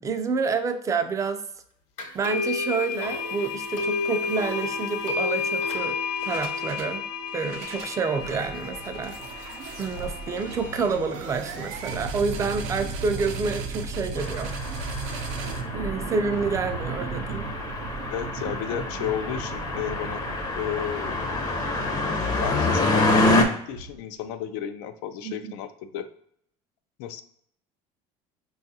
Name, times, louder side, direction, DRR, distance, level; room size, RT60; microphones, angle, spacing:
voice 1, 0.0-1.4 2.1-6.0 6.3-7.1 7.3-14.5 15.7-17.5 25.2-25.5, right 4 dB, 25° right, 8 dB, 0.4 m, -28 dB
sound 1, 2.0-10.8, left 5 dB, 60° left, 0.9 m, -31 dB
sound 2, 6.2-6.9 7.3-24.2, right 4 dB, 80° right, 0.6 m, -36 dB
sound 3, 14.2-23.4, left 2 dB, 25° left, 0.6 m, -27 dB
voice 2, 18.1-20.3 20.6-21.4 22.4-26.1 27.0-27.2, left 10 dB, 85° left, 10 dB, 0.4 m, -32 dB
4.5 x 2.3 x 2.7 m, 0.68 s
cardioid pair, 125°, 14 cm